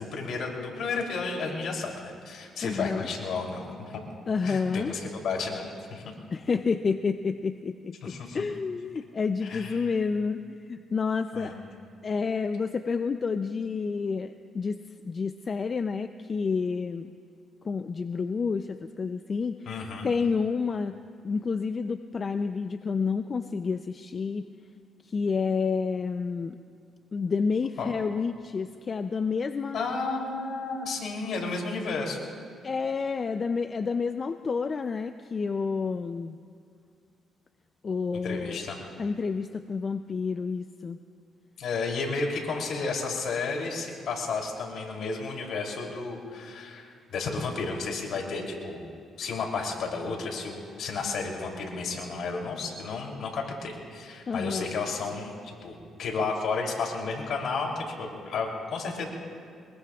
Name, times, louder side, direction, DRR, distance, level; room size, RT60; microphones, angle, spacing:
voice 1, 0.0-4.0 4.4-5.6 5.9-6.1 8.0-8.4 9.4-9.9 11.3-11.6 19.6-20.1 27.8-27.9 29.7-32.3 38.2-38.8 41.6-48.9 49.2-59.0, left 4 dB, 70° left, 0 dB, 3.2 m, -32 dB
voice 2, 2.6-3.1 4.3-4.9 6.3-11.5 12.0-14.8 15.0-17.1 17.6-21.0 21.2-24.5 25.1-26.6 27.1-29.8 32.6-36.4 37.8-38.6 39.0-41.0 54.3-54.7, left 5 dB, 40° left, 8 dB, 0.5 m, -29 dB
23.5 x 21.5 x 2.4 m, 2.3 s
cardioid pair, 90°, 0 cm